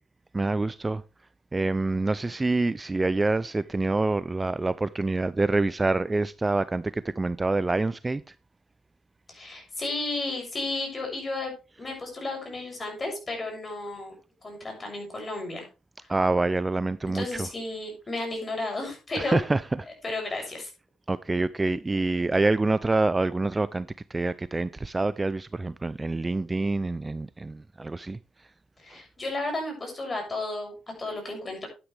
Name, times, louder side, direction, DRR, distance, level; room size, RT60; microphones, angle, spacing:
voice 1, 0.3-1.0 1.5-8.2 16.1-17.3 19.2-19.6 21.1-23.9 24.1-28.2, right 2 dB, 20° right, 0.4 m, -26 dB
voice 2, 9.3-11.5 11.8-14.1 14.4-15.7 16.0-16.1 17.1-19.4 20.0-20.7 28.8-31.7, left 2 dB, 30° left, 7.0 m, -33 dB
11.5 x 9.7 x 3.4 m
cardioid pair, 90°, 0 cm